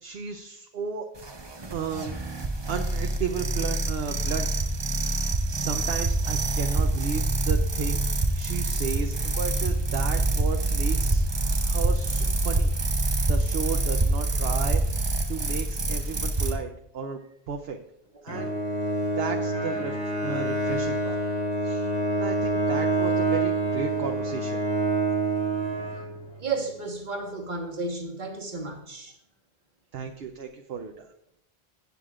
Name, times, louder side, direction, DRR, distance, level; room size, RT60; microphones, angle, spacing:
voice 1, 0.0-1.1 1.7-2.2 2.7-4.5 5.0-5.2 5.5-12.7 13.3-17.2 17.5-17.8 18.2-18.5 19.2-21.2 21.6-21.9 22.2-24.6 29.9-31.1, right 6 dB, 65° right, 0.9 m, -34 dB
sound 1, 1.2-16.5, right 2 dB, 25° right, 0.7 m, -26 dB
Bowed string instrument, 18.3-26.5, right 2 dB, 70° left, 3.8 m, -27 dB
voice 2, 26.4-29.2, right 3 dB, 45° right, 1.5 m, -32 dB
15.0 x 8.3 x 2.4 m
omnidirectional pair, 1.2 m